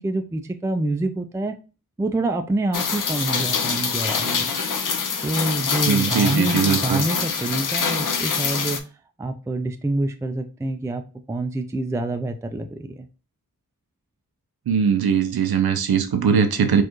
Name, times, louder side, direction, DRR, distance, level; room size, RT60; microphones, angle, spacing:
voice 1, 0.0-1.6 2.0-4.5 5.2-8.8 9.2-11.0 11.3-13.1, right 2 dB, 10° right, 0.4 m, -26 dB
Rain, 2.7-8.8, left 6 dB, 60° left, 0.6 m, -25 dB
voice 2, 5.9-7.0 14.7-16.8, right 7 dB, 80° right, 0.7 m, -20 dB
4.4 x 2.5 x 2.9 m
wide cardioid pair, 65°, 36 cm